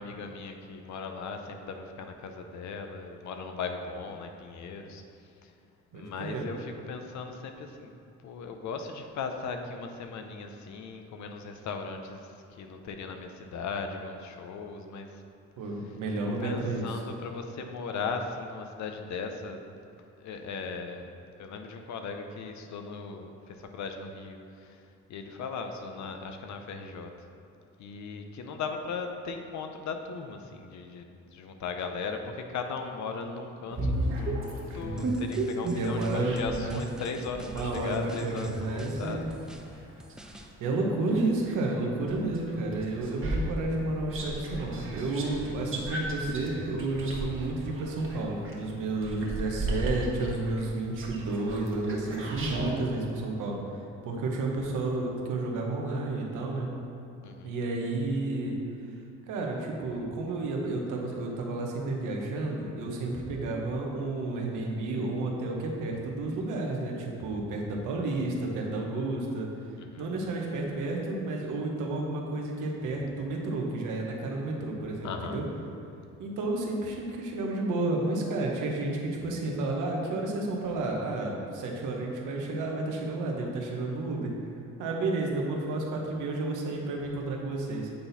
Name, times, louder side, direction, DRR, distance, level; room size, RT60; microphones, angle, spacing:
voice 1, 0.0-5.0 5.4-5.5 5.9-7.9 8.2-15.1 16.4-19.6 20.2-21.1 21.4-24.8 25.1-27.1 27.8-39.2 39.6-39.9 57.2-57.6 69.8-70.1 75.0-75.4, left 4 dB, 70° left, 6 dB, 0.7 m, -38 dB
voice 2, 5.9-6.4 15.6-17.0 35.7-36.8 37.4-39.3 40.6-53.6 54.0-56.7 57.4-58.6 59.3-69.5 70.0-75.5 76.2-84.3 84.8-87.9, right 2 dB, 90° right, 0 dB, 1.1 m, -31 dB
sound 1, 33.7-36.7 37.2-41.6 42.1-52.8, right 1 dB, 45° right, 1.3 m, -34 dB
sound 2, 35.0-40.5, equal, ahead, 0.4 m, -48 dB
8.5 x 4.1 x 4.1 m, 2.5 s
cardioid pair, 90°, 30 cm